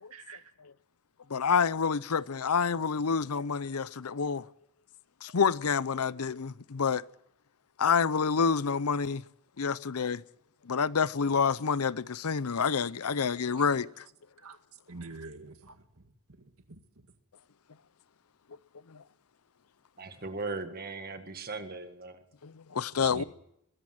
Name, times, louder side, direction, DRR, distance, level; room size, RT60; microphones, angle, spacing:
voice 1, 0.1-0.4 14.4-14.6 14.9-15.8 16.7-16.8 23.0-23.2, right 4 dB, 80° right, 2.0 m, -44 dB
voice 2, 1.3-4.4 5.2-7.0 7.8-9.2 9.6-10.2 10.6-14.0 18.9-19.0 22.4-23.2, left 6 dB, 85° left, 0.7 m, -28 dB
voice 3, 20.0-22.2, right 3 dB, 45° right, 1.8 m, -38 dB
21.5 x 17.0 x 7.7 m
head